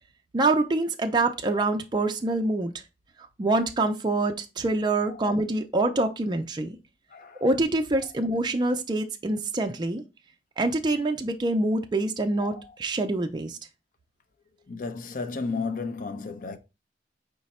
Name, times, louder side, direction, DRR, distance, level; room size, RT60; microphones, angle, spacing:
voice 1, 0.3-2.7 3.4-6.8 7.4-10.0 10.6-13.6, right 2 dB, 25° right, 0.4 m, -25 dB
voice 2, 7.1-7.4 12.4-12.8 14.7-16.6, left 4 dB, 50° left, 0.5 m, -33 dB
4.8 x 2.2 x 4.1 m
head